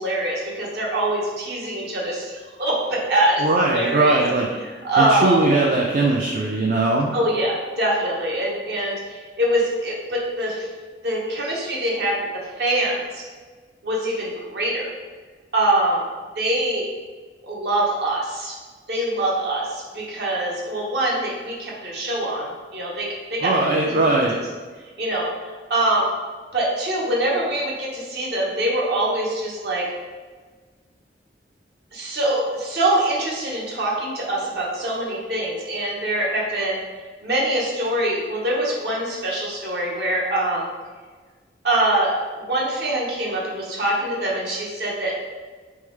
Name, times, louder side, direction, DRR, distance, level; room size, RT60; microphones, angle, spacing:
voice 1, 0.0-4.2 4.8-5.4 7.1-10.7 11.0-13.2 13.8-14.9 15.5-16.0 16.3-16.9 17.4-18.5 18.9-23.5 23.8-24.0 25.0-25.3 25.7-26.0 26.5-29.9 31.9-36.8 37.2-40.7 41.6-45.1, right 1 dB, 65° right, -3 dB, 1.0 m, -24 dB
voice 2, 3.4-4.5 5.0-7.1 23.4-24.4, right 2 dB, 50° right, -1 dB, 0.4 m, -20 dB
3.7 x 3.4 x 3.2 m, 1.4 s
head